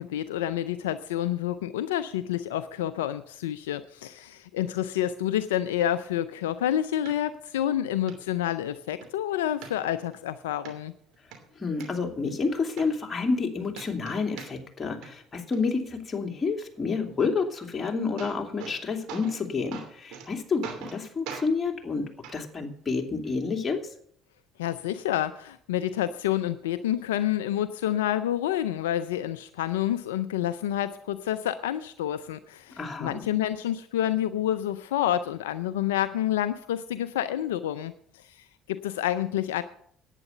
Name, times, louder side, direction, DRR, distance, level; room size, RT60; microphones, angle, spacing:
voice 1, 0.0-10.9 24.6-39.6, left 11 dB, 85° left, 13 dB, 0.4 m, -28 dB
sound 1, 7.1-7.2 7.6-7.7 8.1-8.2 8.6-9.1 9.6-10.2 10.7-10.8 11.1-11.9 12.4-12.5 12.8-13.5 13.7-14.8 15.0-15.6 17.6-17.7 18.0-18.8 19.1-19.4 19.7-20.3 20.6-21.0 21.3-21.5 22.2-22.4 23.3-23.4, right 7 dB, 70° right, 2.8 m, -41 dB
voice 2, 11.6-22.1 22.3-23.8 32.8-33.2, left 4 dB, 30° left, 3 dB, 2.7 m, -29 dB
10.5 x 9.1 x 6.8 m, 0.63 s
hypercardioid pair, 60°, 0 cm